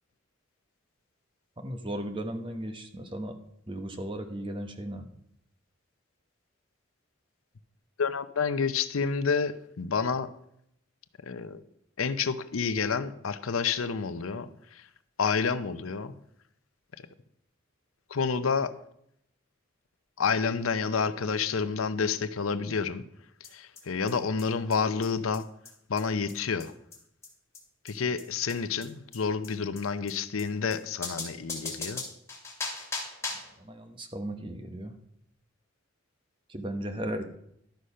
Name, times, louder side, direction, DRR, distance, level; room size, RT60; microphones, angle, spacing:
voice 1, 1.6-3.4 3.7-5.1 33.6-35.0 36.5-37.3, right 1 dB, 25° right, 6 dB, 1.0 m, -36 dB
voice 2, 8.0-10.3 11.2-11.6 12.0-14.9 15.2-16.1 18.1-18.7 20.2-23.0 23.5-25.5 25.9-26.7 27.8-32.0, left 5 dB, 90° left, 12 dB, 0.7 m, -29 dB
sound 1, 23.4-23.5 23.8-23.9 24.1-24.2 24.4-24.5 24.7-24.8 25.0-25.1 25.3-25.4 25.7-25.8 26.0-26.1 26.3-26.4 26.6-26.7 26.9-27.0 27.2-27.3 27.5-27.6 27.9-28.0 28.2-28.3 28.5-28.6 28.8-28.9 29.1-29.2 29.4-29.5 29.8-29.9 30.1-30.2 30.4-30.5 30.7-30.8 31.0-33.6, left 3 dB, 15° left, 2.3 m, -37 dB
12.0 x 6.5 x 5.5 m, 0.73 s
head